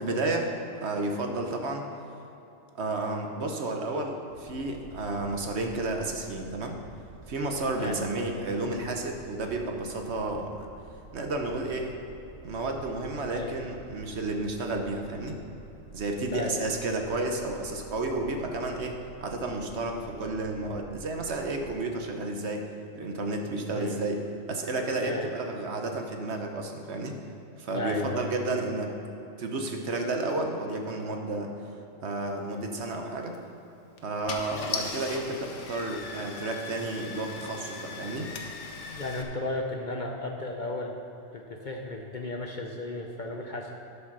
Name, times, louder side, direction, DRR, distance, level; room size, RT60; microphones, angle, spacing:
voice 1, 0.0-1.8 2.7-6.8 7.3-10.7 11.1-11.9 12.4-15.4 15.9-22.6 22.9-24.2 24.5-27.2 27.6-28.9 29.4-31.5 32.0-33.3 34.0-38.3, right 2 dB, 60° right, 3 dB, 1.1 m, -31 dB
sound 1, 4.3-21.7, right 3 dB, 80° right, 1.1 m, -49 dB
voice 2, 27.7-28.3 38.8-40.9 41.3-43.7, left 2 dB, 45° left, 2 dB, 0.7 m, -34 dB
Car / Engine starting, 33.2-33.4 34.0-34.1 34.3-39.2, left 4 dB, 65° left, 1.2 m, -38 dB
12.5 x 5.5 x 5.9 m, 2.9 s
omnidirectional pair, 1.3 m